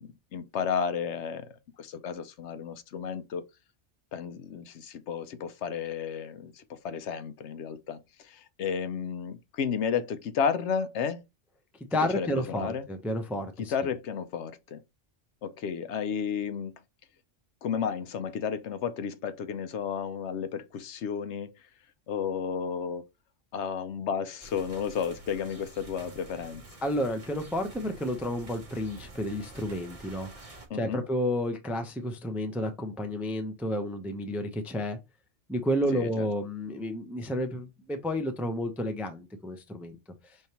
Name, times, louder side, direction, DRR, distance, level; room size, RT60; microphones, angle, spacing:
voice 1, 0.0-1.5 1.8-3.4 4.1-11.2 12.1-12.9 13.6-14.8 15.4-16.7 17.6-21.7 22.1-23.0 23.5-26.6 30.7-31.0 35.9-36.3, left 7 dB, 75° left, 0.9 m, -32 dB
voice 2, 11.9-13.7 26.8-35.0 35.5-40.0, equal, ahead, 0.4 m, -31 dB
sound 1, 24.4-30.7, right 2 dB, 35° right, 0.9 m, -48 dB
5.5 x 3.2 x 2.8 m
omnidirectional pair, 1.2 m